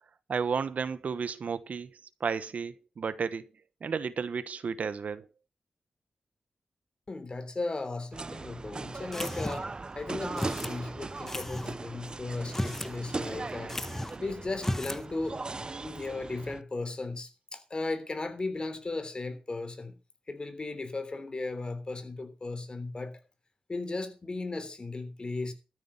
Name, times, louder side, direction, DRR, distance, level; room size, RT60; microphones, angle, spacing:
voice 1, 0.3-3.5 3.8-5.2, right 5 dB, 70° right, 1.1 m, -33 dB
voice 2, 7.1-13.8 14.2-20.0 20.3-23.2 23.7-25.5, left 3 dB, 35° left, 3.3 m, -36 dB
sound 1, 8.1-16.6, right 3 dB, 35° right, 0.6 m, -39 dB
sound 2, 9.1-9.8 10.4-10.8 11.3-11.7 12.4-13.0 13.2-13.3 13.7-14.2 14.6-15.0, left 1 dB, 15° left, 1.1 m, -34 dB
13.0 x 8.5 x 5.6 m
wide cardioid pair, 85°, 3 cm